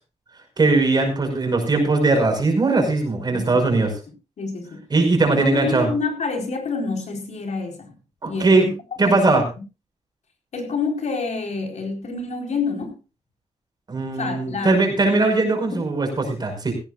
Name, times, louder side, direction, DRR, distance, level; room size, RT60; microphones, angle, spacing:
voice 1, 0.6-3.9 4.9-5.9 8.2-8.7 9.0-9.4 13.9-16.7, right 3 dB, 35° right, 3 dB, 5.5 m, -19 dB
voice 2, 3.3-3.8 4.4-4.8 5.2-7.9 8.2-8.7 9.0-9.4 10.5-13.0 14.1-15.2 15.7-15.9, left 4 dB, 80° left, 3 dB, 4.4 m, -28 dB
17.5 x 16.0 x 2.5 m, 0.31 s
wide cardioid pair, 160°, 12 cm